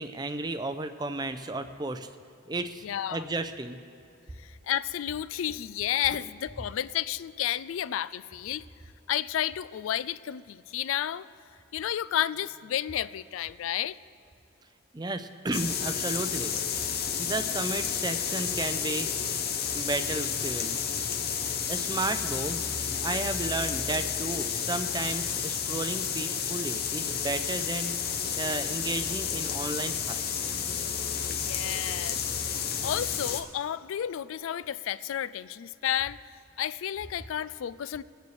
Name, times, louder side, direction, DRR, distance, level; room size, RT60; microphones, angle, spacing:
voice 1, 0.0-2.1 2.5-2.8 3.1-3.8 14.9-16.6 17.2-19.1 19.7-20.8 21.4-22.6 23.0-30.4, right 2 dB, 20° right, 9 dB, 0.5 m, -33 dB
voice 2, 2.8-3.3 4.4-8.7 9.1-11.3 11.7-14.0 31.4-36.2 36.6-38.0, left 11 dB, 85° left, 18 dB, 0.3 m, -31 dB
sound 1, 15.5-33.4, left 7 dB, 50° left, 0.7 m, -31 dB
21.5 x 9.5 x 3.2 m, 2.7 s
head